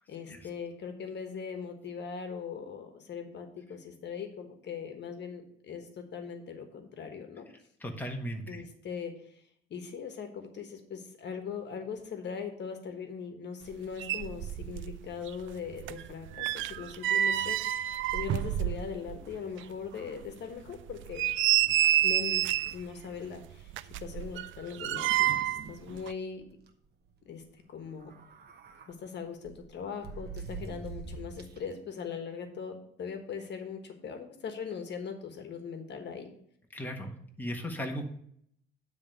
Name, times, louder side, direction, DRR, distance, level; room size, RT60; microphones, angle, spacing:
voice 1, 0.0-7.5 8.5-9.3 9.7-21.2 22.0-23.7 24.0-26.4 27.2-28.1 28.9-36.3, left 6 dB, 60° left, 6 dB, 1.3 m, -40 dB
voice 2, 7.8-8.6 36.7-37.1 37.4-38.0, equal, 10° left, 1 dB, 1.4 m, -36 dB
sound 1, 13.7-13.8 14.0-15.0 15.3-19.2 19.6-19.7 20.2-20.3 20.9-22.8 23.7-25.7 26.0-26.1, right 12 dB, 75° right, 0.4 m, -29 dB
sound 2, 24.8-25.8 26.1-26.2 26.5-26.7 27.9-28.9 29.4-31.7, right 4 dB, 55° right, 1.1 m, -44 dB
9.8 x 3.5 x 6.6 m, 0.68 s
cardioid pair, 90°, 20 cm